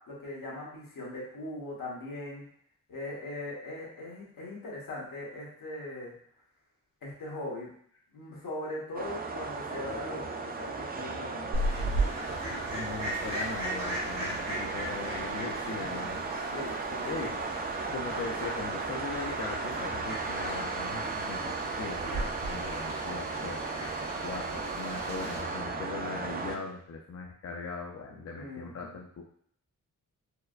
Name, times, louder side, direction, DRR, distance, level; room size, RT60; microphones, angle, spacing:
voice 1, 0.1-2.5 2.9-6.1 7.0-7.7 8.1-10.2 10.6-12.1 12.4-13.1 15.8-16.2 16.5-17.4 26.2-26.6 28.3-29.0, left 1 dB, 80° left, -5 dB, 1.3 m, -40 dB
sound 1, 8.9-26.6, right 4 dB, 30° right, 0.4 m, -36 dB
Fowl, 11.5-25.4, right 1 dB, 90° right, 1.4 m, -37 dB
voice 2, 12.7-16.2 17.0-17.5 17.9-23.6 24.2-29.2, left 4 dB, 50° left, -1 dB, 0.5 m, -40 dB
Domestic sounds home sounds, 20.0-25.6, right 1 dB, 45° right, 0.7 m, -49 dB
4.5 x 2.1 x 2.4 m, 0.63 s
wide cardioid pair, 95°, 33 cm